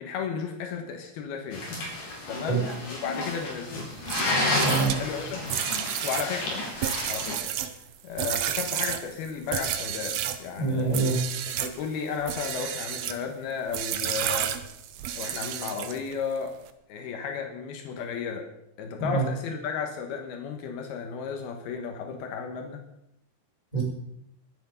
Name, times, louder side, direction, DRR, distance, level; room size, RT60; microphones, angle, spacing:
voice 1, 0.0-1.7 2.3-2.6 3.0-3.9 5.0-5.4 6.0-6.7 7.1-7.6 8.0-11.2 11.4-14.6 15.2-16.5 16.9-18.5 18.8-22.8, left 6 dB, 80° left, 4 dB, 3.2 m, -34 dB
sound 1, 1.5-7.3, left 2 dB, 60° left, 4.6 m, -31 dB
sound 2, 4.0-10.4 10.9-11.8 12.2-13.2 13.7-16.1, right 10 dB, 90° right, 1.5 m, -31 dB
voice 2, 4.6-4.9 10.6-11.2 19.0-19.2 23.7-23.8, right 4 dB, 10° left, -3 dB, 6.4 m, -25 dB
22.0 x 8.5 x 5.4 m, 0.81 s
omnidirectional pair, 4.5 m